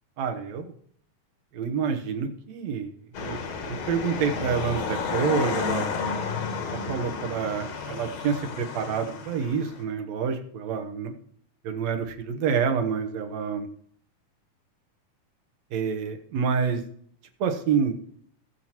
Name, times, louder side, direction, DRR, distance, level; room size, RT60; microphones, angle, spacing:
voice 1, 0.2-0.7 1.5-2.9 3.2-3.4 3.6-5.9 6.6-11.2 11.6-13.7 15.7-16.8 17.4-18.0, right 6 dB, 65° right, 5 dB, 2.3 m, -28 dB
sound 1, 3.1-9.8, left 5 dB, 60° left, 2.3 m, -32 dB
20.5 x 7.1 x 3.0 m, 0.63 s
omnidirectional pair, 3.6 m